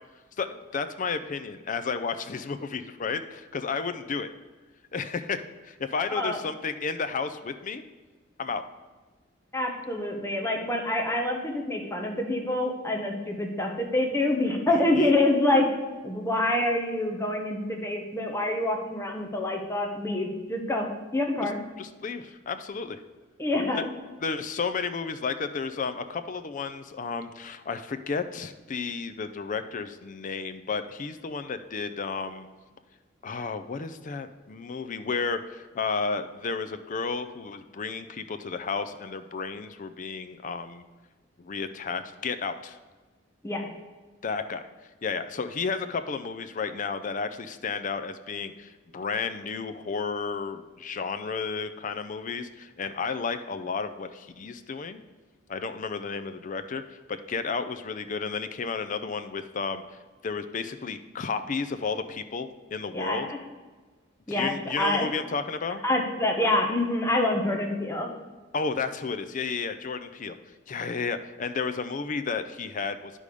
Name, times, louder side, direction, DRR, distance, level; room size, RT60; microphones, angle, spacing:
voice 1, 0.4-4.3 4.9-5.4 5.6-7.8 8.4-8.6 14.7-15.1 21.8-23.0 23.7-23.8 24.2-32.5 33.2-40.8 41.4-42.8 44.2-44.7 45.0-55.0 55.5-59.8 60.2-63.3 64.3-65.8 68.5-70.4 70.7-73.1, left 5 dB, 40° left, 10 dB, 0.5 m, -32 dB
voice 2, 9.5-15.7 16.0-20.9 21.1-21.6 23.4-23.9 43.4-43.6 62.9-63.4 64.3-65.1 65.8-68.1, left 1 dB, 15° left, 1 dB, 1.1 m, -26 dB
9.9 x 4.9 x 5.3 m, 1.3 s
head